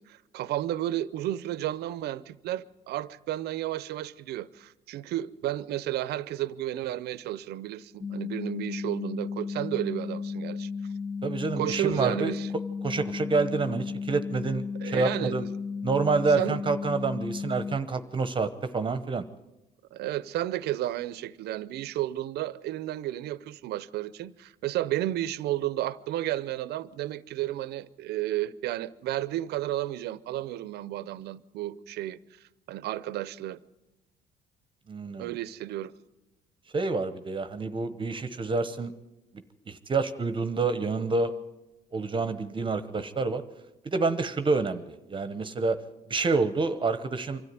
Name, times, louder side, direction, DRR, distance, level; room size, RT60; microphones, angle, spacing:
voice 1, 0.0-10.7 11.5-12.5 14.8-15.5 16.3-16.6 19.9-32.2 32.7-33.6 35.2-35.9, right 13 dB, 75° right, 0.7 m, -32 dB
sound 1, 8.0-17.8, left 5 dB, 45° left, 1.0 m, -34 dB
voice 2, 11.2-12.3 12.8-15.4 15.8-19.2 34.9-35.3 36.7-38.9 39.7-41.3 41.9-43.4 43.8-45.8 46.1-47.4, right 4 dB, 30° right, 1.0 m, -28 dB
24.5 x 13.5 x 9.5 m
cardioid pair, 110°, 17 cm